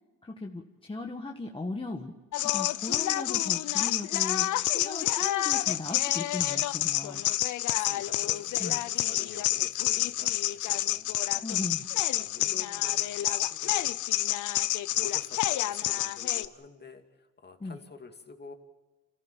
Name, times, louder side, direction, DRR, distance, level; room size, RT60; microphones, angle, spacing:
voice 1, 0.2-2.2 2.4-7.2 8.6-8.8 11.3-11.9 17.6-17.8, left 2 dB, 15° left, 2 dB, 1.5 m, -37 dB
sound 1, 2.3-16.5, left 14 dB, 80° left, 0.7 m, -28 dB
voice 2, 7.7-11.5 12.1-13.9 14.9-18.5, left 4 dB, 35° left, 5 dB, 2.5 m, -48 dB
27.0 x 15.0 x 8.8 m, 1.2 s
cardioid pair, 90°, 30 cm